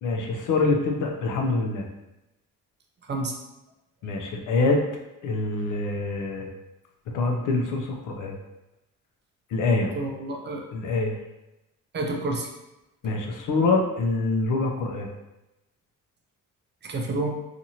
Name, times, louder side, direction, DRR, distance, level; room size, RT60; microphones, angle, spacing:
voice 1, 0.0-1.9 4.0-4.8 5.2-6.5 7.1-8.3 9.5-9.9 10.7-11.2 13.0-15.1, left 3 dB, 70° left, 1 dB, 0.6 m, -25 dB
voice 2, 9.9-10.6 11.9-12.5 16.8-17.4, right 2 dB, 35° right, 1 dB, 0.4 m, -29 dB
2.7 x 2.5 x 2.8 m, 0.96 s
cardioid pair, 145°, 33 cm